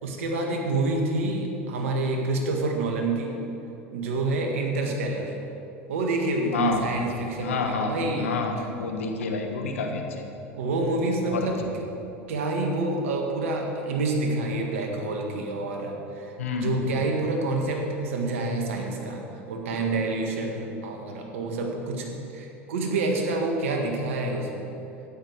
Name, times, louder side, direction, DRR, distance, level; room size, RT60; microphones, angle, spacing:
voice 1, 0.0-3.4 3.9-5.3 5.9-8.3 10.5-11.6 12.3-19.2 19.5-24.7, right 2 dB, 80° right, 2 dB, 1.8 m, -28 dB
voice 2, 6.5-6.9 7.4-10.0 11.3-11.5 16.4-16.8, left 4 dB, 90° left, 4 dB, 1.4 m, -28 dB
12.5 x 10.0 x 4.8 m, 2.9 s
hypercardioid pair, 90°, 7 cm